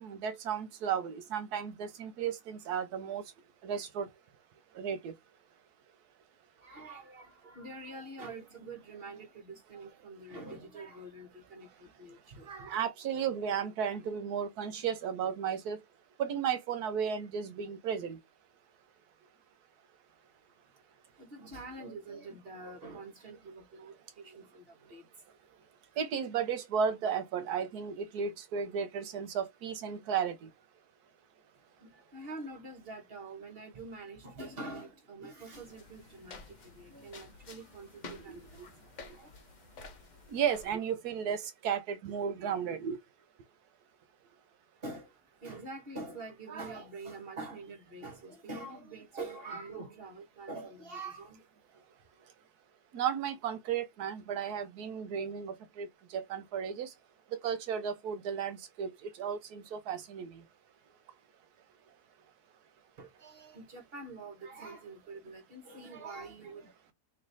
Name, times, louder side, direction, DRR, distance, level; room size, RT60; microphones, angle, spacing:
voice 1, 0.0-3.2 3.6-4.1 4.7-5.1 12.7-15.8 16.2-18.2 26.0-30.5 38.3-38.4 40.3-43.0 52.9-56.9 57.4-60.4, right 7 dB, 75° right, 1.3 m, -34 dB
voice 2, 6.6-12.7 21.2-25.2 31.5-39.3 44.8-51.4 51.7-51.8 52.1-52.3 63.0-66.9, right 2 dB, 40° right, 1.5 m, -46 dB
sound 1, 35.5-40.7, left 3 dB, 50° left, 0.5 m, -51 dB
3.2 x 3.2 x 4.0 m
omnidirectional pair, 1.7 m